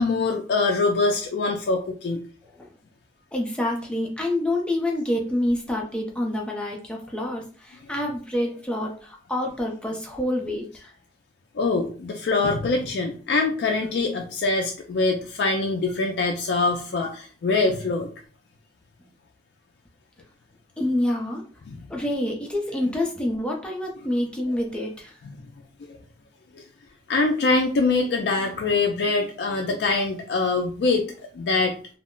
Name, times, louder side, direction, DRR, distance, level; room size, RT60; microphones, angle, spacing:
voice 1, 0.0-2.2 11.6-18.1 21.7-21.8 26.5-26.6 27.1-31.1 31.3-31.8, left 3 dB, 70° left, 2 dB, 0.3 m, -23 dB
voice 2, 3.3-10.9 20.8-21.4 21.9-25.2, left 1 dB, 5° left, -1 dB, 0.5 m, -27 dB
2.2 x 2.0 x 3.6 m, 0.40 s
head